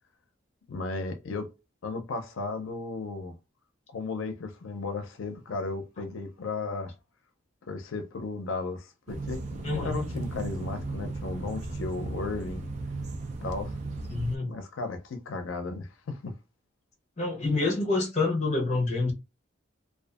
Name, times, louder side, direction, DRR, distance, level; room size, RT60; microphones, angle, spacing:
voice 1, 0.7-1.5 1.8-3.4 3.9-6.9 7.7-12.6 13.4-13.8 14.4-16.4, left 3 dB, 90° left, 0.5 m, -35 dB
sound 1, 9.1-14.4, right 2 dB, 35° right, 0.4 m, -35 dB
voice 2, 9.6-10.0 14.1-14.5 17.2-19.1, left 3 dB, 35° left, 0.8 m, -27 dB
2.5 x 2.4 x 2.3 m
head